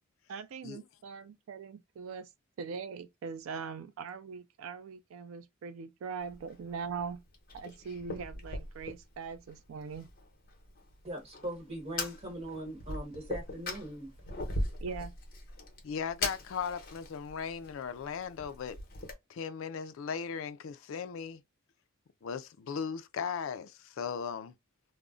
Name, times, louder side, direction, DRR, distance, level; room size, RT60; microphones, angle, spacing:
voice 1, 0.3-2.3 2.6-7.2 7.5-10.1 14.8-15.2, right 5 dB, 70° right, 0.3 m, -41 dB
Fire, 6.2-19.1, left 2 dB, 40° left, 0.9 m, -41 dB
voice 2, 11.0-14.1, right 1 dB, 30° right, 1.0 m, -40 dB
voice 3, 15.8-18.8 19.3-21.4 22.2-24.5, left 6 dB, 60° left, 0.3 m, -37 dB
2.3 x 2.0 x 3.6 m
head